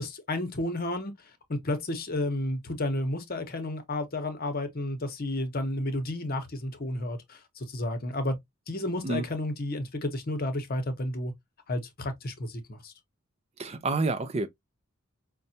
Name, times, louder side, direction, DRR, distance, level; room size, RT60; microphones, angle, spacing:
voice 1, 0.0-8.4 8.7-11.3 11.7-12.9, left 1 dB, 45° left, 0.8 m, -32 dB
voice 2, 13.6-14.5, right 3 dB, 30° right, 0.4 m, -28 dB
5.2 x 2.2 x 2.7 m
head